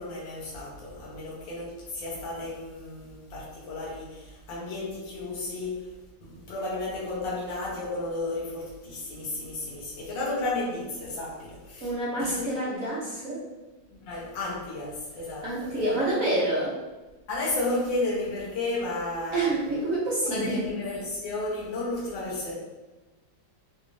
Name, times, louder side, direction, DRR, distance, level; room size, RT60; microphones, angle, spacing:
voice 1, 0.0-5.9 6.2-11.9 12.2-12.5 13.9-16.0 17.3-19.7 20.2-22.5, left 2 dB, 75° left, -5 dB, 1.6 m, -33 dB
voice 2, 11.8-13.4 15.4-16.7 19.3-20.6, right 1 dB, 60° right, -6 dB, 0.9 m, -27 dB
4.0 x 2.4 x 3.0 m, 1.2 s
omnidirectional pair, 2.0 m